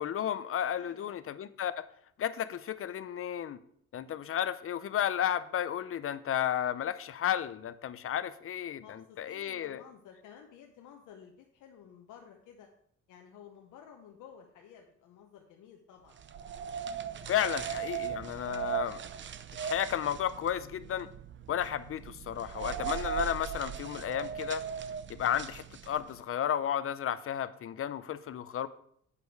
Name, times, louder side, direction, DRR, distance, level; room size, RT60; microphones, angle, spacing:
voice 1, 0.0-1.9 2.2-3.6 3.9-9.8 17.3-19.0 19.6-21.1 21.5-24.6 25.1-28.7, left 10 dB, 45° left, 14 dB, 0.6 m, -33 dB
voice 2, 0.7-1.1 4.0-4.3 8.8-12.7 13.1-16.2, left 8 dB, 85° left, 2 dB, 0.9 m, -53 dB
sound 1, 16.2-26.2, right 8 dB, 40° right, 0.5 m, -38 dB
8.4 x 5.2 x 4.7 m, 0.67 s
cardioid pair, 90°, 30 cm